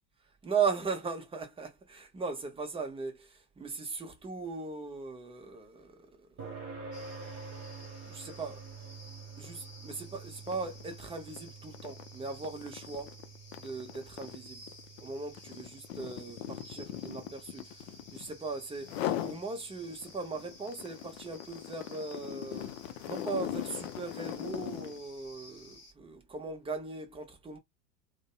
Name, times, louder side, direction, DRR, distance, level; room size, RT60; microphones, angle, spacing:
voice 1, 0.4-6.3 8.0-8.6 9.4-13.1 13.6-14.6 15.0-22.7 23.1-27.6, right 4 dB, 10° right, 0.6 m, -38 dB
sound 1, 6.4-21.3, right 5 dB, 25° right, 1.2 m, -49 dB
sound 2, 6.9-25.9, left 2 dB, 30° left, 1.2 m, -54 dB
sound 3, 9.4-9.6 9.9-18.4 18.8-19.4 19.8-25.0, left 12 dB, 55° left, 0.5 m, -40 dB
2.5 x 2.1 x 2.3 m
figure-of-eight pair, 80°, 49 cm